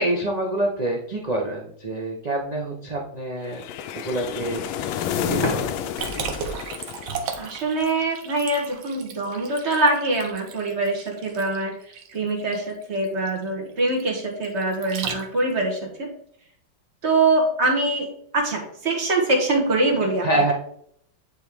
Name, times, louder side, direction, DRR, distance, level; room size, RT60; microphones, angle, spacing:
voice 1, 0.0-3.6 3.9-4.6 5.3-5.7 20.2-20.5, right 1 dB, 55° right, -2 dB, 0.4 m, -26 dB
sound 1, 3.5-7.7, left 9 dB, 85° left, 1.4 m, -30 dB
sound 2, 5.4-8.0, left 1 dB, 25° left, 0.5 m, -34 dB
Liquid, 6.0-15.6, right 6 dB, 85° right, 1.7 m, -35 dB
voice 2, 7.4-11.7 12.1-16.1 17.0-18.1 18.3-20.5, right 2 dB, 40° right, 0 dB, 1.4 m, -23 dB
9.2 x 3.2 x 3.5 m, 0.66 s
omnidirectional pair, 2.2 m